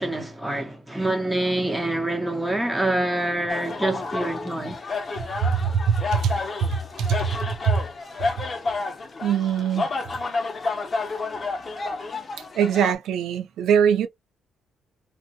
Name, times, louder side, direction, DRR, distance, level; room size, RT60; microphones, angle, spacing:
voice 1, 0.0-4.8, right 1 dB, 10° right, 1.0 m, -26 dB
sound 1, 3.5-12.9, left 3 dB, 35° left, 0.7 m, -30 dB
voice 2, 5.1-7.8 8.2-8.3 9.2-9.9 12.5-14.1, right 7 dB, 80° right, 0.7 m, -23 dB
2.9 x 2.2 x 2.8 m
cardioid pair, 90°, 0 cm